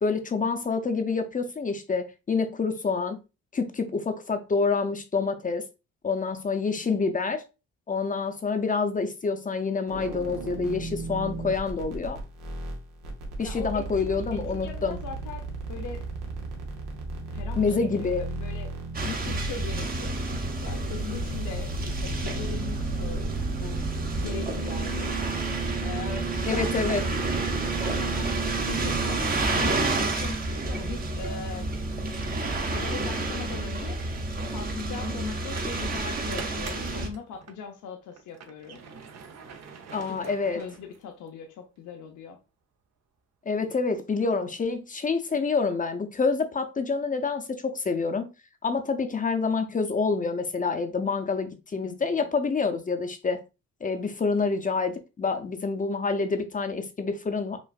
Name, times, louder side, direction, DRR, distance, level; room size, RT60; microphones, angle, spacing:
voice 1, 0.0-3.2 3.5-5.6 6.0-7.4 7.9-12.2 13.4-15.0 17.6-18.2 26.5-27.0 39.9-40.6 43.5-48.3 48.6-53.4 53.8-57.6, left 4 dB, 25° left, 0.6 m, -27 dB
voice 2, 6.7-7.0 13.4-16.1 17.3-18.7 19.0-23.2 23.6-23.9 24.2-25.5 25.8-27.0 27.8-31.7 32.7-38.8 40.0-40.2 40.5-42.4 51.8-52.3, left 6 dB, 80° left, 0.7 m, -40 dB
sound 1, 9.9-29.2, right 3 dB, 85° right, 0.9 m, -35 dB
sound 2, 18.9-37.1, right 2 dB, 30° right, 0.8 m, -30 dB
sound 3, 35.5-37.6 38.1-41.3, right 5 dB, 60° right, 0.7 m, -45 dB
5.2 x 2.5 x 2.4 m
cardioid pair, 90°, 30 cm